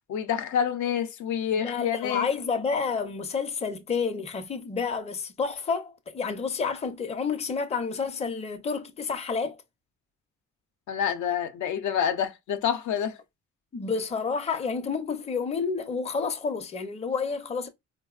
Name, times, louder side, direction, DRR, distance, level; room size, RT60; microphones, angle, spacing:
voice 1, 0.1-2.3 10.9-13.2, left 8 dB, 75° left, 0.6 m, -27 dB
voice 2, 1.6-9.6 13.7-17.7, left 5 dB, 20° left, 0.5 m, -30 dB
4.1 x 2.0 x 2.3 m
cardioid pair, 90°, 30 cm